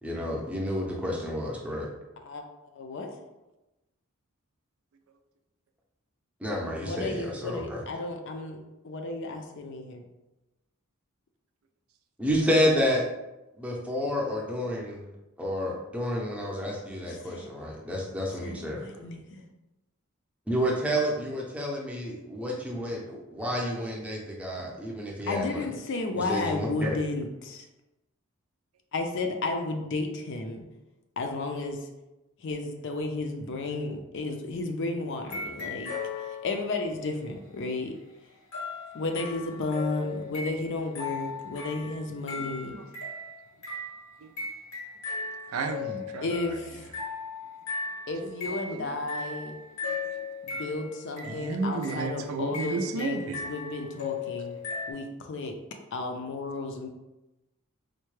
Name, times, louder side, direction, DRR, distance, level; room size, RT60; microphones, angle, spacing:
voice 1, 0.0-1.9 6.4-7.8 12.2-13.0 13.6-15.0 15.4-18.9 20.5-25.6 26.2-27.0, equal, 5° right, -3 dB, 0.6 m, -30 dB
voice 2, 2.7-3.1 6.8-8.6 8.8-10.0 17.1-17.5 18.4-19.4 25.3-27.7 28.9-30.7 31.2-31.9 32.4-35.9 36.2-37.9 38.9-42.8 46.2-46.9 48.1-49.6 50.4-54.6 54.9-55.6 55.9-56.9, left 3 dB, 60° left, 4 dB, 0.5 m, -33 dB
sound 1, 35.2-36.8 38.5-54.9, left 4 dB, 90° left, 0.9 m, -37 dB
voice 3, 42.3-42.8 44.2-44.3 45.5-46.3 48.5-48.9 49.9-50.0 51.2-53.4, right 4 dB, 70° right, 5 dB, 0.4 m, -33 dB
4.4 x 2.2 x 3.1 m, 0.99 s
head